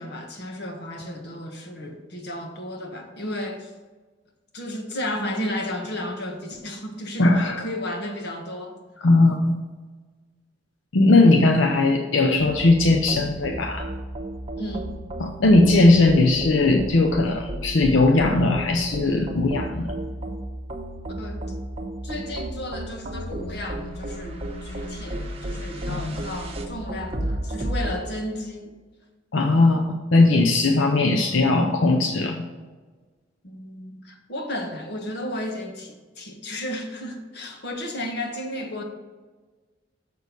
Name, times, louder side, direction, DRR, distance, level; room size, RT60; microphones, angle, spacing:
voice 1, 0.0-3.7 4.5-8.8 14.6-14.9 21.2-21.4 22.0-28.7 33.4-38.8, left 1 dB, 60° left, 3 dB, 1.4 m, -33 dB
voice 2, 7.2-7.6 9.0-9.6 10.9-13.9 15.2-19.9 25.9-26.2 29.3-29.8 30.1-32.4, left 2 dB, 85° left, 3 dB, 0.7 m, -18 dB
sound 1, 12.4-27.9, right 1 dB, 30° right, 1.0 m, -33 dB
6.7 x 6.3 x 5.3 m, 1.4 s
head